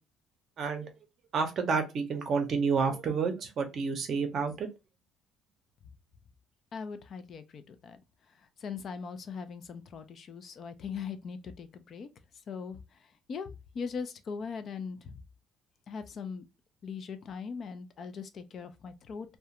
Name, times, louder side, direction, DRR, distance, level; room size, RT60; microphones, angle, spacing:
voice 1, 0.6-0.9 1.3-4.7, right 5 dB, 50° right, 0.6 m, -29 dB
voice 2, 6.7-8.0 8.3-12.1 12.5-13.5 13.7-15.2 15.9-16.5 16.8-19.4, left 5 dB, 45° left, 0.4 m, -40 dB
2.4 x 2.1 x 2.8 m
cardioid pair, 130°, 0 cm